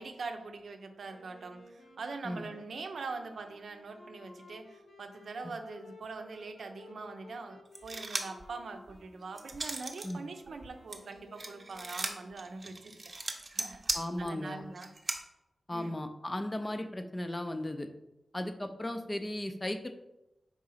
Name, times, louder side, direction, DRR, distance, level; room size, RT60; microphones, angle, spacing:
voice 1, 0.0-13.0 13.2-13.9 14.2-14.9 15.7-16.0, right 4 dB, 80° right, 6 dB, 0.6 m, -43 dB
Wind instrument woodwind instrument, 1.0-12.1, left 2 dB, 70° left, 1.2 m, -56 dB
sound 1, 7.7-8.4 8.9-10.1 10.5-15.2, right 2 dB, 35° right, 0.7 m, -37 dB
voice 2, 13.9-14.6 15.7-17.9 18.3-19.9, left 1 dB, 20° left, 7 dB, 0.5 m, -36 dB
4.8 x 3.8 x 5.6 m, 0.94 s
wide cardioid pair, 155°, 0 cm